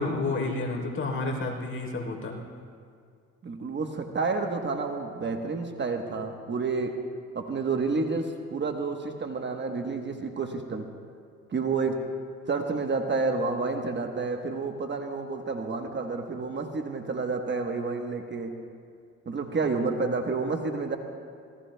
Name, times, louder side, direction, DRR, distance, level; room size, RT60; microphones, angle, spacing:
voice 1, 0.0-2.4, left 2 dB, 45° left, 0 dB, 3.4 m, -30 dB
voice 2, 3.4-7.0 7.3-10.9 11.5-12.0 12.5-18.6 19.3-21.0, right 4 dB, 35° right, 4 dB, 1.1 m, -30 dB
26.0 x 18.0 x 2.2 m, 2.2 s
cardioid pair, 90°, 30 cm